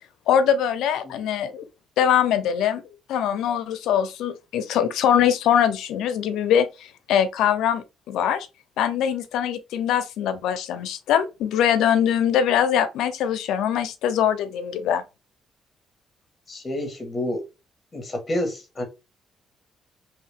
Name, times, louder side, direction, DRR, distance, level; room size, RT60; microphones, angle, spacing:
voice 1, 0.3-1.6 2.0-2.8 3.1-8.5 8.8-15.0, left 9 dB, 85° left, 0.5 m, -22 dB
voice 2, 16.5-17.4 17.9-18.8, left 1 dB, 30° left, 1.4 m, -28 dB
3.0 x 2.8 x 3.4 m
cardioid pair, 90°, 0 cm